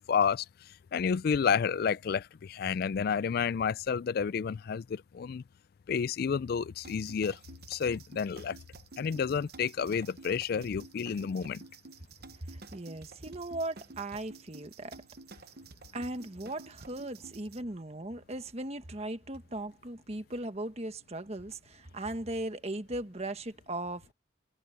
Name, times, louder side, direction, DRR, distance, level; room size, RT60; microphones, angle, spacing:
voice 1, 0.1-0.4 0.9-2.2 2.5-5.4 5.9-7.4 7.7-8.6 9.0-11.6, left 6 dB, 50° left, 0.3 m, -30 dB
sound 1, 6.8-17.6, right 3 dB, 55° right, 0.9 m, -51 dB
voice 2, 12.4-15.0 15.9-24.1, right 1 dB, 35° right, 1.3 m, -38 dB
head